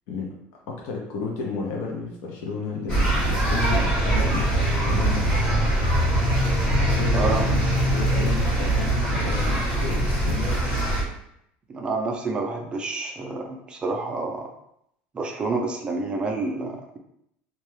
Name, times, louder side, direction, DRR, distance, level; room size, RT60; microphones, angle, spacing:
voice 1, 0.7-5.4 6.7-7.6 7.9-10.6, left 5 dB, 65° left, -1 dB, 0.6 m, -32 dB
sound 1, 2.9-11.0, right 1 dB, 45° left, 1.4 m, -22 dB
voice 2, 7.1-7.5 11.7-14.5 15.1-17.0, right 3 dB, 20° right, 2 dB, 0.4 m, -28 dB
2.7 x 2.2 x 3.2 m, 0.77 s
cardioid pair, 160°, 5 cm